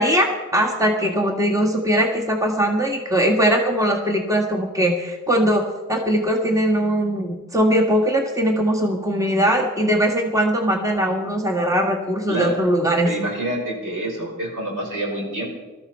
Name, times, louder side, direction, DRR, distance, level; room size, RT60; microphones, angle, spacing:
voice 1, 0.0-5.6 5.9-13.1, equal, 10° right, 1 dB, 1.7 m, -20 dB
voice 2, 13.0-15.5, right 1 dB, 75° right, -1 dB, 5.5 m, -27 dB
20.5 x 13.5 x 4.4 m, 1.3 s
wide cardioid pair, 90°, 32 cm